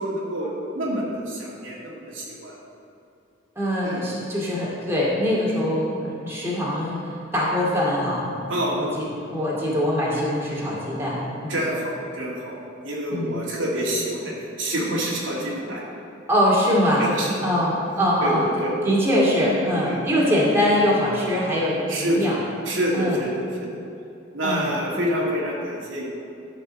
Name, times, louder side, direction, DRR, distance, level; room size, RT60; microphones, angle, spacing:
voice 1, 0.0-2.6 3.8-4.0 8.5-8.8 11.5-15.8 17.0-17.3 18.2-18.7 19.7-20.3 21.9-22.3 22.6-23.8 24.3-26.1, equal, 85° right, -5 dB, 2.5 m, -27 dB
voice 2, 3.6-8.3 8.8-11.6 13.1-13.4 16.3-17.1 17.4-18.5 18.8-22.4 22.9-23.2 24.4-24.7, equal, 15° right, -6 dB, 2.3 m, -23 dB
12.0 x 5.4 x 6.5 m, 2.6 s
head